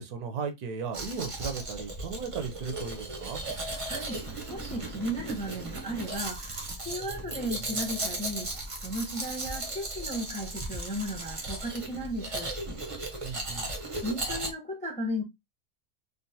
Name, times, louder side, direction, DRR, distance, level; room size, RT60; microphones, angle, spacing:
voice 1, 0.0-3.4 13.2-13.7, right 5 dB, 75° right, 1.1 m, -36 dB
Domestic sounds home sounds, 0.9-14.5, right 2 dB, 45° right, 0.4 m, -36 dB
voice 2, 3.5-8.5 8.8-12.6 14.0-15.2, equal, 10° left, 0.5 m, -35 dB
3.8 x 2.1 x 2.6 m
omnidirectional pair, 1.6 m